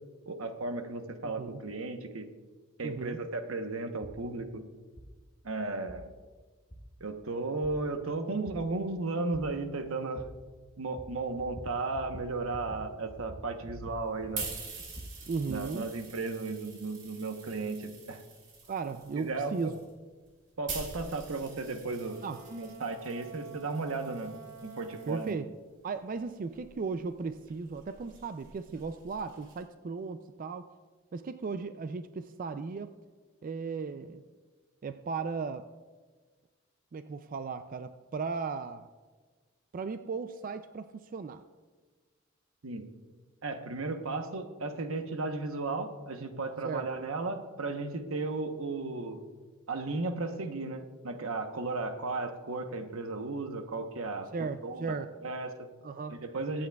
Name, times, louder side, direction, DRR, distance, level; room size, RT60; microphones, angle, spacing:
voice 1, 0.3-2.3 2.8-4.6 5.4-6.1 7.0-10.2 10.8-14.5 15.5-18.2 19.2-19.7 20.6-22.2 22.5-24.3 24.6-25.4 42.6-42.8 43.4-49.2 49.7-55.7 56.1-56.7, right 3 dB, 85° right, 7 dB, 1.0 m, -35 dB
voice 2, 1.2-1.6 2.8-3.2 15.3-15.9 18.7-19.8 22.2-22.4 25.1-25.5 25.8-30.7 31.1-32.9 33.4-34.2 34.8-35.7 36.9-38.9 39.7-41.4 46.6-46.9 54.3-55.1 55.8-56.2, right 4 dB, 40° right, 10 dB, 0.4 m, -36 dB
sound 1, 4.0-4.2 5.0-5.1 5.9-6.0 6.7-6.8 7.6-7.7 8.4-8.6 9.3-9.4 10.2-10.3 11.0-11.1 11.4-11.7 12.0-12.2 12.5-12.8 13.1-14.0 14.2-15.6, equal, 15° left, 0.9 m, -45 dB
sound 2, 13.9-25.3 26.1-29.6, right 4 dB, 60° right, 2.7 m, -46 dB
Wind instrument woodwind instrument, 21.9-25.4, right 6 dB, 10° right, 3.3 m, -50 dB
23.0 x 8.7 x 2.3 m, 1.4 s
head